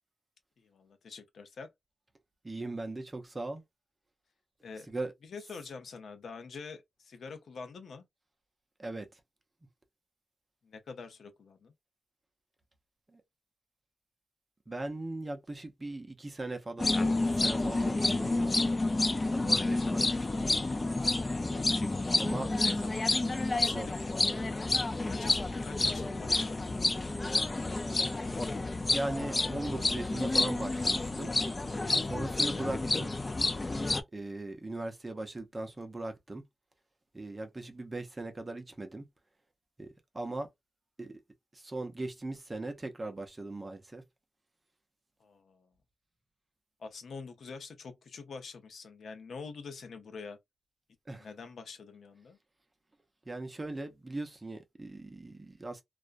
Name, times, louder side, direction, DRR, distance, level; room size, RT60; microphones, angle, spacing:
voice 1, 0.6-1.7 4.6-4.9 5.3-8.0 10.6-11.7 22.6-23.1 23.5-24.6 25.1-26.6 45.2-45.7 46.8-50.4 51.1-52.4, left 5 dB, 80° left, 0.7 m, -46 dB
voice 2, 2.4-3.6 4.8-5.1 8.8-9.2 13.1-13.2 14.7-16.9 17.2-18.6 19.3-20.4 22.2-22.5 23.6-23.9 28.9-31.3 32.0-33.1 34.1-36.4 37.1-39.1 39.8-39.9 40.1-40.5 41.0-41.2 41.5-44.0 51.1-51.3 53.2-55.8, right 2 dB, 25° right, 0.6 m, -39 dB
sound 1, 16.8-34.0, left 2 dB, 30° left, 0.4 m, -29 dB
2.4 x 2.1 x 2.4 m
wide cardioid pair, 105°, 0 cm